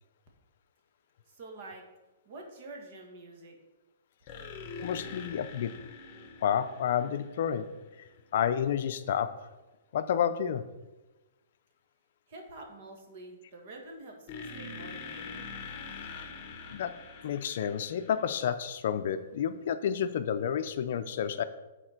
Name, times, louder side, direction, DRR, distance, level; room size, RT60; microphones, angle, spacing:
voice 1, 1.3-1.8 2.2-3.6 12.3-15.4, right 2 dB, 50° right, 1 dB, 1.6 m, -47 dB
sound 1, 4.3-7.9 14.3-18.5, left 4 dB, 35° left, 0.9 m, -44 dB
voice 2, 4.8-5.7 6.4-7.7 8.3-9.5 9.9-10.6 16.7-16.9 17.2-21.4, left 8 dB, 60° left, 10 dB, 0.5 m, -30 dB
9.0 x 4.3 x 4.4 m, 1.1 s
hypercardioid pair, 150°, 0 cm